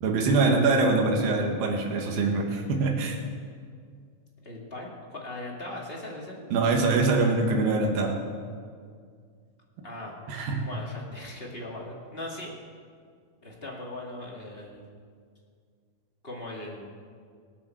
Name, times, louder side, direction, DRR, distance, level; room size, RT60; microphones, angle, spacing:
voice 1, 0.0-3.2 6.5-8.2 10.3-10.7, right 3 dB, 80° right, 1 dB, 3.3 m, -24 dB
voice 2, 4.4-6.5 9.8-10.1 10.6-12.5 13.4-14.8 16.2-16.9, left 1 dB, 20° left, -3 dB, 1.6 m, -39 dB
25.5 x 8.6 x 4.5 m, 2.1 s
omnidirectional pair, 4.1 m